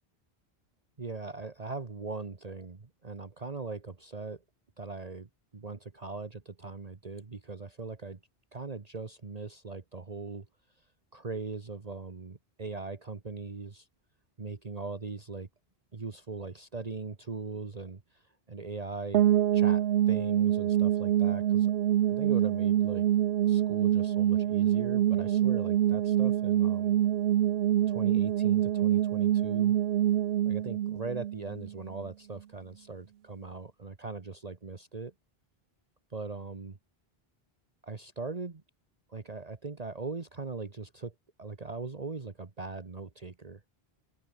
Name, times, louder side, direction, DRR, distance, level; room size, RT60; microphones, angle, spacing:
voice 1, 1.0-4.4 4.8-8.2 8.5-10.5 11.1-13.9 14.4-15.5 15.9-19.2 19.5-21.7 22.1-23.1 23.4-27.0 27.9-29.7 30.4-35.1 36.1-36.8 37.8-38.6 39.1-43.6, right 4 dB, 40° right, 1.4 m, -40 dB
sound 1, 19.1-32.0, right 11 dB, 75° right, 0.9 m, -26 dB
open air
omnidirectional pair, 1.0 m